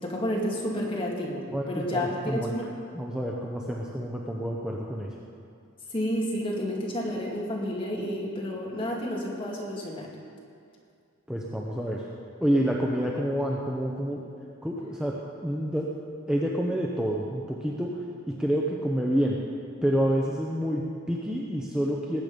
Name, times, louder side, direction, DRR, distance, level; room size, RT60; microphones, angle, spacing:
voice 1, 0.0-2.7 5.9-10.1, equal, 25° left, -3 dB, 2.3 m, -30 dB
voice 2, 1.5-2.5 2.9-5.1 11.3-12.0 12.4-14.3 14.6-15.2 15.4-15.9 16.3-18.0 18.3-19.4 19.8-22.2, equal, 5° right, -3 dB, 0.8 m, -28 dB
19.5 x 8.3 x 5.2 m, 2.4 s
head